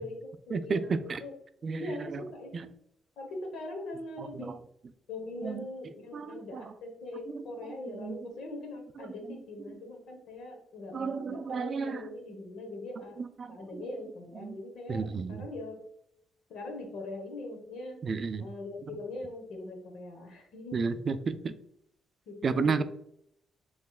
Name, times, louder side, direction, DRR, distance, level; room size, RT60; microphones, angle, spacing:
voice 1, 0.0-0.9 1.2-1.4 1.8-2.7 3.2-4.6 5.1-13.2 13.5-15.8 16.5-18.0 18.4-20.9 22.3-22.8, left 2 dB, 75° left, 3 dB, 1.0 m, -41 dB
voice 2, 1.6-2.2 2.5-2.6 4.2-4.5 5.4-5.6 6.1-6.6 8.0-8.2 10.9-12.0 13.4-13.8 14.4-14.6 14.9-15.4 18.0-18.5 20.7-21.5 22.4-22.8, right 5 dB, 45° right, 12 dB, 0.3 m, -32 dB
3.6 x 3.1 x 2.3 m, 0.73 s
cardioid pair, 90°, 0 cm